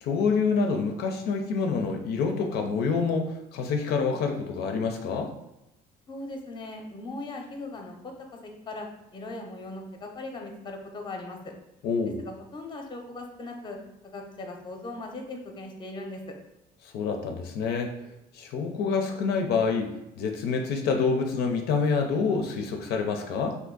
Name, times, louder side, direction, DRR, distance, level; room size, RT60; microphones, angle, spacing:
voice 1, 0.0-5.3 11.8-12.2 16.8-17.9 18.3-19.9 20.2-23.6, left 5 dB, 75° left, 4 dB, 0.4 m, -27 dB
voice 2, 6.1-8.1 8.7-8.9 9.1-11.5 12.2-13.8 14.1-16.2, left 2 dB, 25° left, 3 dB, 0.6 m, -39 dB
2.7 x 2.5 x 3.7 m, 0.87 s
cardioid pair, 110°, 17 cm